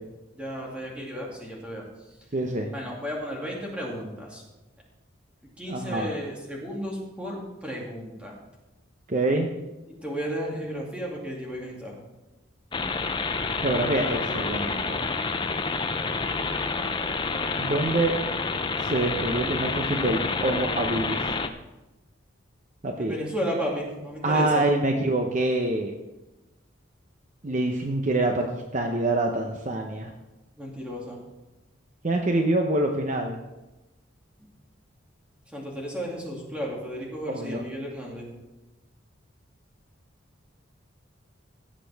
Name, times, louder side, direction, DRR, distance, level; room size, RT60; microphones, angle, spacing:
voice 1, 0.3-1.8 2.7-4.4 5.6-8.3 10.0-12.0 23.0-24.7 30.6-31.2 35.5-38.3, equal, 5° right, -3 dB, 2.3 m, -33 dB
voice 2, 2.3-2.7 5.7-6.1 9.1-9.5 13.6-15.0 17.6-18.1 18.8-21.3 22.8-23.2 24.2-25.9 27.4-30.1 32.0-33.4 37.3-37.6, right 2 dB, 40° right, 3 dB, 0.8 m, -26 dB
sound 1, 12.7-21.5, left 4 dB, 25° left, 0.5 m, -28 dB
16.5 x 7.6 x 3.5 m, 1.0 s
head